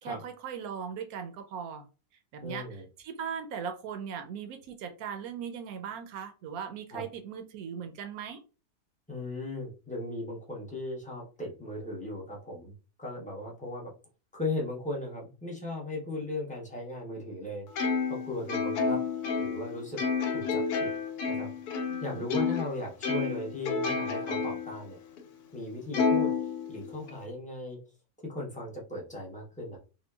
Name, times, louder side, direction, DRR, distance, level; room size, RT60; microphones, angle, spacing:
voice 1, 0.0-1.9 2.3-2.6 3.0-8.4 21.9-22.3, right 7 dB, 75° right, 6 dB, 1.0 m, -39 dB
voice 2, 2.4-2.9 6.9-7.0 9.1-12.7 13.0-13.9 14.3-19.0 19.4-20.0 20.3-20.9 21.3-21.5 22.0-25.0 25.5-27.8 28.2-29.8, left 2 dB, 10° left, -3 dB, 0.5 m, -37 dB
Plucked string instrument, 17.8-22.7 23.0-24.7 25.2-25.3 25.9-27.1, left 5 dB, 85° left, 1.1 m, -30 dB
3.7 x 2.2 x 2.3 m, 0.33 s
omnidirectional pair, 1.6 m